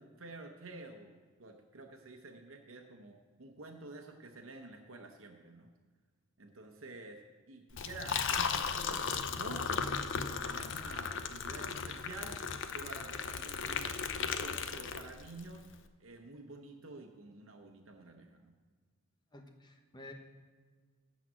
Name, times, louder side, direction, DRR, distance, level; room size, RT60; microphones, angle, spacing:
voice 1, 0.0-5.7 6.4-7.2 7.5-12.4 12.7-15.7 16.0-18.5, right 2 dB, 70° right, 3 dB, 0.9 m, -49 dB
Liquid, 7.7-15.4, left 6 dB, 65° left, 0.6 m, -36 dB
voice 2, 19.3-20.1, left 2 dB, 20° left, 4 dB, 1.0 m, -51 dB
12.5 x 4.1 x 7.5 m, 1.5 s
head